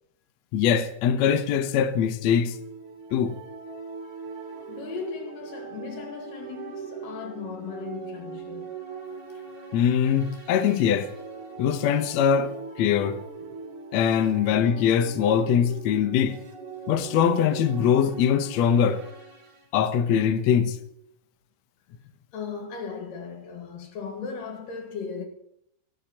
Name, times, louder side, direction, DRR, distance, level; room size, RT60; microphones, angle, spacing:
voice 1, 0.5-2.6 3.1-3.3 9.7-11.1 11.6-13.2 13.9-16.4 16.9-19.0 19.7-20.8, left 8 dB, 80° left, 1.5 m, -22 dB
sound 1, 2.4-19.6, right 5 dB, 50° right, 4.1 m, -41 dB
voice 2, 4.7-8.8 22.3-25.3, left 5 dB, 65° left, 3.2 m, -37 dB
24.5 x 12.0 x 2.9 m
omnidirectional pair, 4.4 m